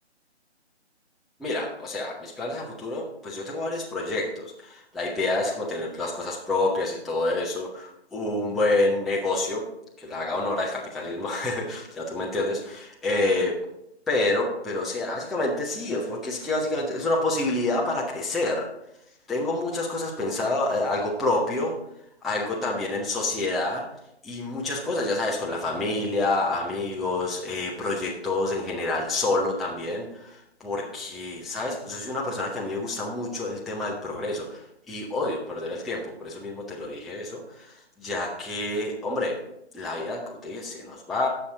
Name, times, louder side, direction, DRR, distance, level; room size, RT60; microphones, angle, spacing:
voice 1, 1.4-9.7 10.0-13.5 14.1-18.7 19.3-21.8 22.2-23.8 24.2-39.4 39.7-41.3, left 2 dB, ahead, -4 dB, 0.4 m, -28 dB
11.0 x 6.8 x 3.8 m, 0.81 s
hypercardioid pair, 165°, 34 cm